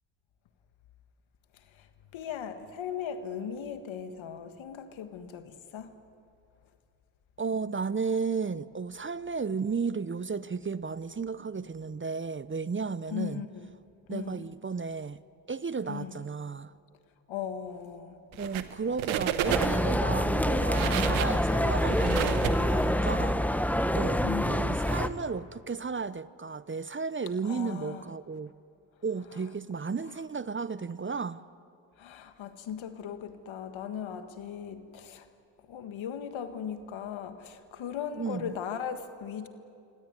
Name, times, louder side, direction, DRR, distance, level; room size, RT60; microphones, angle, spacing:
voice 1, 1.5-5.9 13.1-13.7 14.1-14.5 15.9-16.2 17.3-18.2 18.9-19.3 24.2-24.8 27.4-28.0 32.0-35.3 35.7-39.5, left 8 dB, 75° left, 1.7 m, -38 dB
voice 2, 7.4-13.4 14.1-15.2 15.5-16.7 18.4-23.4 23.9-24.2 24.5-28.5 29.0-31.4 38.1-38.5, right 5 dB, 25° right, 0.7 m, -33 dB
sound 1, 18.3-18.7 19.0-19.9 20.5-23.1, right 10 dB, 85° right, 1.2 m, -32 dB
sound 2, 19.5-25.1, equal, 5° left, 1.2 m, -26 dB
25.0 x 17.5 x 9.6 m
supercardioid pair, 45°, 46 cm